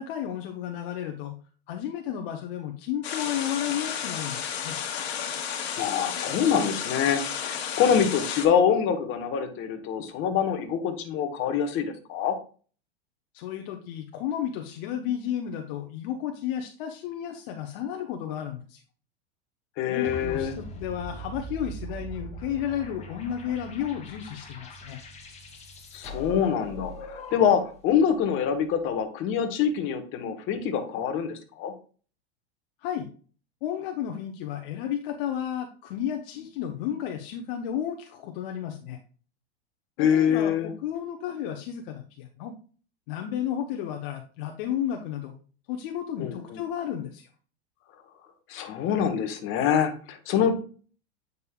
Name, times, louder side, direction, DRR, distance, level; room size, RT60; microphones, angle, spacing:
voice 1, 0.0-1.4 1.7-4.8 13.3-18.8 19.9-25.0 32.8-33.1 33.6-39.0 40.0-42.5 43.1-45.3 45.7-47.3, left 10 dB, 55° left, 4 dB, 0.9 m, -32 dB
sound 1, 3.0-8.5, left 8 dB, 75° left, 1.5 m, -32 dB
voice 2, 5.8-12.3 19.8-20.5 25.9-31.7 40.0-40.7 46.2-46.6 48.5-50.5, left 8 dB, 40° left, 6 dB, 1.2 m, -25 dB
sound 2, 20.0-27.9, right 1 dB, 20° left, 1.6 m, -41 dB
8.3 x 5.4 x 2.3 m, 0.40 s
hypercardioid pair, 120°, 32 cm